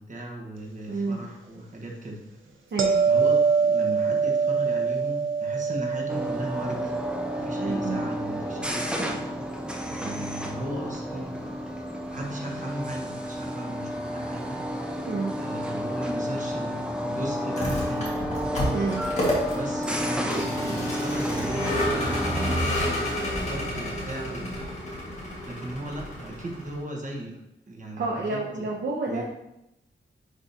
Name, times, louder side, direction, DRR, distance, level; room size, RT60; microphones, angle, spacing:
voice 1, 0.0-2.3 3.1-7.0 7.3-9.2 9.8-11.4 12.1-14.6 15.3-18.3 19.4-23.1 23.4-24.5 25.4-27.4 27.7-28.7 29.1-29.2, right 1 dB, 40° right, -1 dB, 1.2 m, -36 dB
voice 2, 0.9-1.2 2.7-3.0 7.6-8.0 15.1-15.4 18.7-19.1 28.0-29.2, right 3 dB, 60° right, -3 dB, 0.8 m, -29 dB
sound 1, 2.8-9.8 15.0-15.2, right 5 dB, 90° right, 0.7 m, -26 dB
sound 2, 6.1-22.6, equal, 5° right, 0.5 m, -31 dB
Vehicle, 17.4-26.8, equal, 35° left, 1.8 m, -30 dB
9.9 x 3.7 x 2.8 m, 0.87 s
wide cardioid pair, 155°, 20 cm